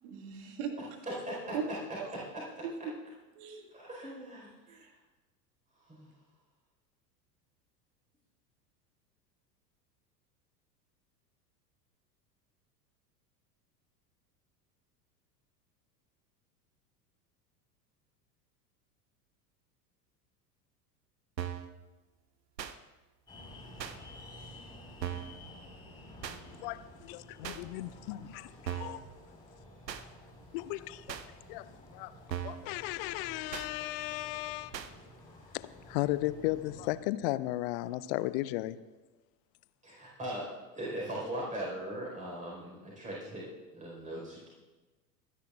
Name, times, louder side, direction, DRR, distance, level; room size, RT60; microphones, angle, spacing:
voice 1, 0.0-0.8 1.5-2.1 2.6-2.9 3.3-3.7 4.7-4.9, right 5 dB, 50° right, 1.9 m, -39 dB
voice 2, 1.2-1.5 2.3-2.6 3.7-4.9 5.9-6.1 39.8-40.5 40.7-44.5, right 1 dB, 15° right, 4.4 m, -40 dB
sound 1, 21.4-21.7 22.6-22.8 23.8-24.0 25.0-25.4 26.2-26.4 27.4-27.6 28.7-29.0 29.9-30.0 31.1-31.3 32.3-32.7 33.5-33.7 34.7-34.9, right 9 dB, 80° right, 0.8 m, -38 dB
sound 2, 23.3-37.0, left 1 dB, 10° left, 4.4 m, -52 dB
voice 3, 26.6-29.1 30.5-31.1 31.5-32.1 32.4-34.8 35.5-38.8, left 17 dB, 35° left, 0.5 m, -35 dB
24.0 x 10.5 x 2.4 m
figure-of-eight pair, 80°, 50 cm